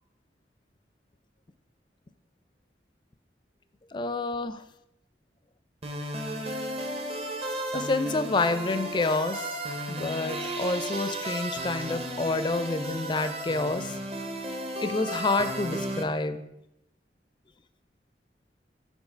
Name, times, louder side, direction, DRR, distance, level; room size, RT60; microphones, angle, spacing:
voice 1, 3.9-4.6 7.7-9.5 9.9-14.0 14.8-16.5, left 3 dB, 25° left, 10 dB, 0.4 m, -28 dB
sound 1, 5.8-16.0, right 1 dB, 35° right, 0.7 m, -34 dB
7.2 x 4.0 x 4.3 m, 0.85 s
head